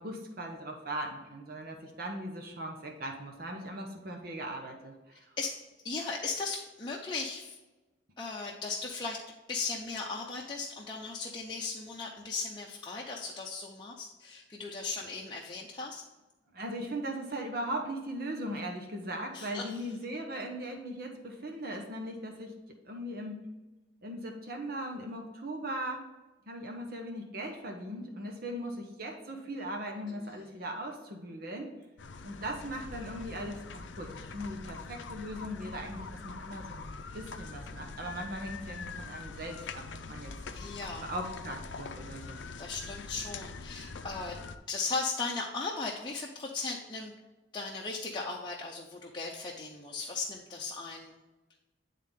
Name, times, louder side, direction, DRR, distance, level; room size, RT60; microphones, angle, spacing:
voice 1, 0.0-5.3 14.9-15.0 16.5-22.5 22.8-23.4 24.0-26.0 26.5-31.7 32.2-36.8 37.1-40.3 41.0-42.4, right 1 dB, 55° right, 2 dB, 1.1 m, -39 dB
voice 2, 5.4-7.6 8.2-16.0 19.3-19.8 30.2-30.5 40.5-41.1 42.6-44.4 44.7-47.1 47.5-51.1, left 4 dB, 25° left, -3 dB, 0.7 m, -37 dB
sound 1, 32.0-44.6, left 4 dB, 90° left, 0.6 m, -44 dB
10.0 x 3.7 x 3.6 m, 1.1 s
head